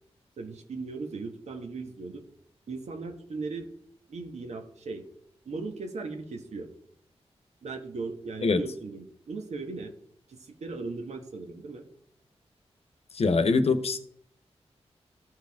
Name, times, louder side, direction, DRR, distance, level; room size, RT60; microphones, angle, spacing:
voice 1, 0.4-2.2 2.7-3.7 4.1-5.0 5.4-6.7 7.6-9.9 10.3-11.9, right 3 dB, 85° right, 5 dB, 1.3 m, -37 dB
voice 2, 13.2-14.0, left 4 dB, 65° left, 10 dB, 0.8 m, -23 dB
14.5 x 4.9 x 3.6 m, 0.69 s
wide cardioid pair, 90°, 11 cm